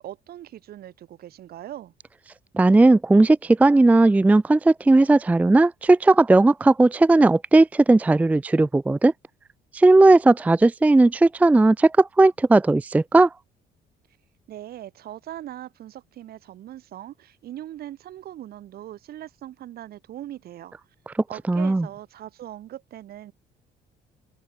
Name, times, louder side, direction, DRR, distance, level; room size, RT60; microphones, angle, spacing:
voice 1, 0.0-1.9 14.5-20.8 21.3-23.3, right 12 dB, 65° right, 4.8 m, -40 dB
voice 2, 2.5-9.1 9.7-13.3 21.5-21.9, right 2 dB, 10° right, 0.4 m, -16 dB
open air
cardioid pair, 110°, 17 cm